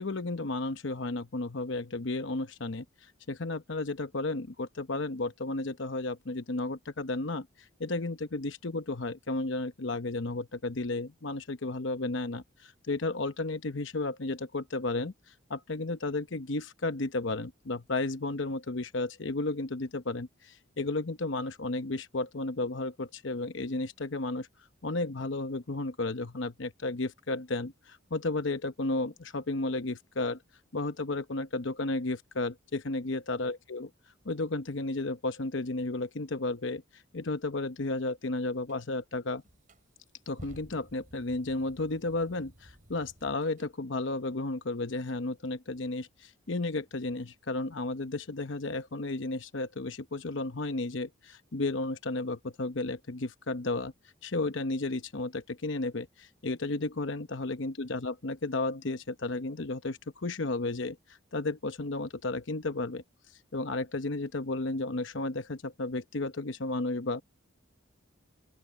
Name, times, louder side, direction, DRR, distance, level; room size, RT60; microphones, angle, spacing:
voice 1, 0.0-2.8 3.3-7.5 7.8-15.1 15.5-24.5 24.8-30.4 30.7-33.9 34.2-39.4 40.3-53.9 54.2-63.0 63.5-67.2, left 2 dB, 65° left, 0.9 m, -33 dB
sound 1, 38.7-38.8 39.4-43.7, equal, 40° right, 4.8 m, -54 dB
open air
head